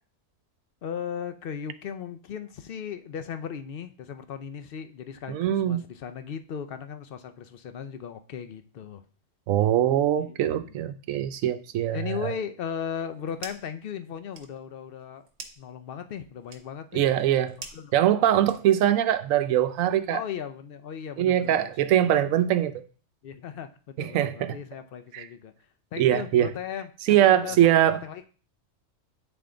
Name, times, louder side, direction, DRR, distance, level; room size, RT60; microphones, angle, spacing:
voice 1, 0.8-9.0 10.4-10.7 11.9-15.3 15.6-17.0 17.7-18.2 20.1-21.7 22.4-22.5 23.2-25.5 25.9-28.3, left 7 dB, 60° left, 0.6 m, -37 dB
voice 2, 5.3-5.9 9.5-12.3 16.9-17.6 17.9-20.2 21.2-22.8 24.0-24.6 25.1-25.3 26.0-26.5 27.1-28.0, right 11 dB, 85° right, 1.0 m, -22 dB
sound 1, 12.9-13.8 14.1-19.0, right 4 dB, 60° right, 1.1 m, -47 dB
8.8 x 3.5 x 3.8 m
omnidirectional pair, 1.4 m